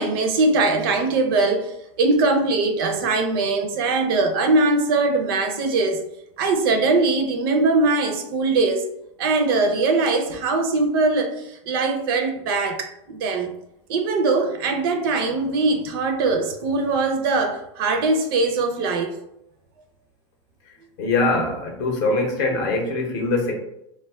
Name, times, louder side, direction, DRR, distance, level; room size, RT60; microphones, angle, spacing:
voice 1, 0.0-1.7 2.0-6.0 6.4-8.9 9.2-11.3 11.7-13.5 13.9-19.2, right 3 dB, 45° right, 0.4 m, -21 dB
voice 2, 21.0-23.5, left 2 dB, 45° left, 0.7 m, -22 dB
2.4 x 2.2 x 3.4 m
supercardioid pair, 170°, 17 cm